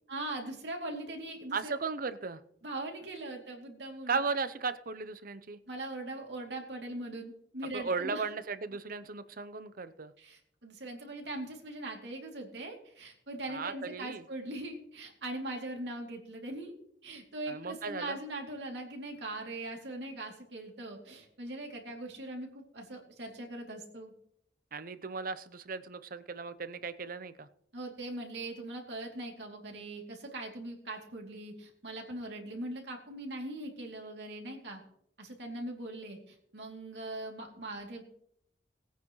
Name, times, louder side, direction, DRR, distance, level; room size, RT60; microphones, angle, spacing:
voice 1, 0.1-1.8 2.6-4.2 5.7-8.2 10.2-16.7 17.0-24.1 27.7-34.8 35.2-38.0, right 1 dB, 80° right, 1 dB, 2.8 m, -41 dB
voice 2, 1.5-2.4 4.1-5.6 7.7-10.1 13.5-14.2 17.5-18.2 24.7-27.5, right 4 dB, 55° right, 13 dB, 0.7 m, -36 dB
19.5 x 9.2 x 3.1 m, 0.69 s
head